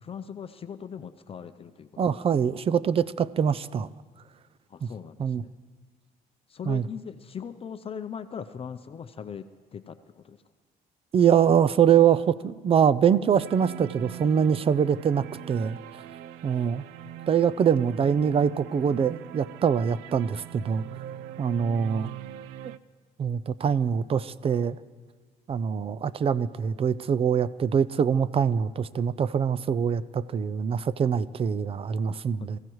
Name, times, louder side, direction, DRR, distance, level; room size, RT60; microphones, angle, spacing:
voice 1, 0.0-2.1 4.7-5.5 6.5-10.4 32.4-32.5, left 7 dB, 35° left, 9 dB, 0.6 m, -40 dB
voice 2, 2.0-3.9 4.8-4.9 5.2-5.4 6.7-6.9 11.1-15.8 16.4-16.8 17.3-20.8 21.4-22.1 23.2-24.8 25.5-32.6, right 7 dB, 35° right, 17 dB, 0.5 m, -24 dB
sound 1, 13.4-22.8, right 12 dB, 90° right, 0.5 m, -42 dB
27.5 x 16.0 x 3.1 m, 1.4 s
cardioid pair, 110°, 17 cm